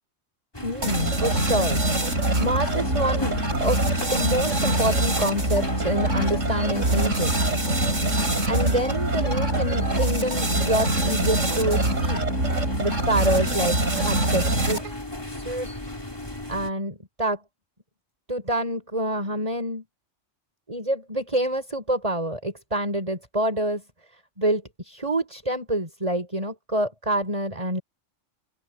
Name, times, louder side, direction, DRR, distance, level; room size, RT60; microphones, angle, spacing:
sound 1, 0.5-16.7, left 1 dB, 20° left, 4.1 m, -36 dB
voice 1, 0.6-1.8 2.4-3.8 4.1-7.3 8.5-12.2 12.8-14.8 15.3-15.7 16.5-17.4 18.3-19.8 20.7-23.8 24.4-27.8, right 1 dB, 25° right, 6.4 m, -27 dB
sound 2, 0.8-15.0, right 1 dB, 85° right, 5.7 m, -24 dB
open air
omnidirectional pair, 1.3 m